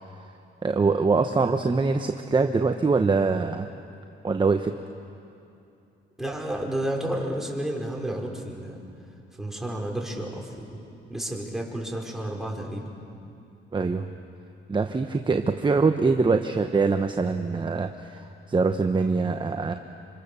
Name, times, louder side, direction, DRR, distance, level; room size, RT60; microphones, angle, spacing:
voice 1, 0.6-3.7 4.2-4.7 13.7-14.1 14.7-19.7, right 4 dB, 25° right, 6 dB, 1.1 m, -23 dB
voice 2, 6.2-8.8 9.4-10.8 11.1-12.8, right 1 dB, ahead, -1 dB, 5.2 m, -31 dB
27.0 x 25.0 x 7.0 m, 2.6 s
cardioid pair, 90°, 20 cm